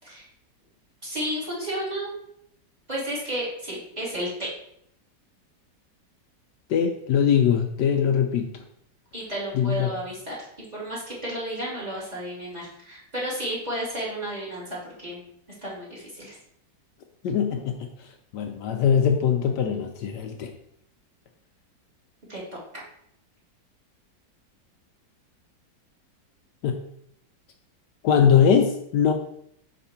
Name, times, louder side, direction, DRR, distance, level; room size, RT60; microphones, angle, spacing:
voice 1, 1.0-2.1 2.9-4.5 9.1-10.4 10.7-15.2 15.6-16.4 22.3-22.6, right 1 dB, 20° right, -6 dB, 2.5 m, -32 dB
voice 2, 6.7-8.5 9.5-9.9 17.2-17.9 18.3-20.5 26.6-26.8 28.0-29.1, left 7 dB, 75° left, 4 dB, 1.2 m, -21 dB
5.1 x 4.4 x 5.7 m, 0.72 s
omnidirectional pair, 2.0 m